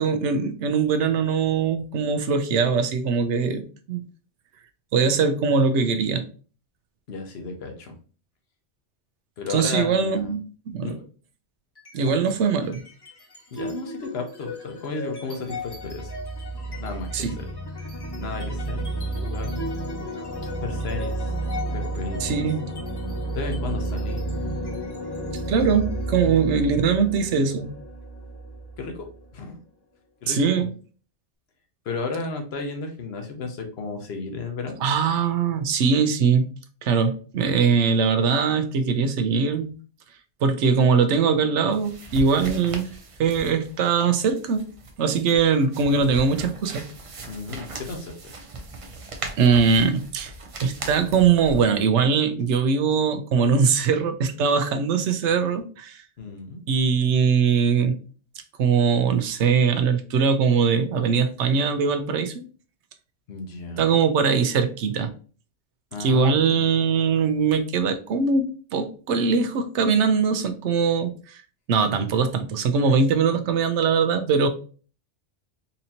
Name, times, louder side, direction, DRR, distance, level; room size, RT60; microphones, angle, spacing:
voice 1, 0.0-4.0 4.9-6.2 9.5-11.0 11.9-12.8 17.1-17.3 22.2-22.7 25.5-27.7 30.3-30.7 34.8-36.5 36.8-39.7 40.4-42.9 43.2-44.7 45.0-46.9 49.4-50.3 50.6-56.0 56.7-58.0 58.6-62.4 63.8-65.1 66.0-71.4 71.7-74.5, right 5 dB, 85° right, 0.9 m, -21 dB
voice 2, 7.1-7.9 9.4-10.3 10.8-11.1 12.0-12.3 13.5-16.1 16.7-17.5 18.2-18.9 19.2-19.6 20.6-21.3 21.7-22.4 23.3-24.3 26.2-26.6 28.8-29.1 29.3-29.6 30.2-30.7 31.8-34.8 47.2-48.3 56.2-56.6 63.3-63.9 65.9-66.7, left 4 dB, 65° left, 1.1 m, -33 dB
sound 1, 11.8-12.3 12.6-29.2, right 1 dB, 25° left, 0.8 m, -32 dB
sound 2, 41.7-51.6, right 2 dB, 45° right, 0.5 m, -39 dB
4.1 x 2.8 x 2.7 m
omnidirectional pair, 1.2 m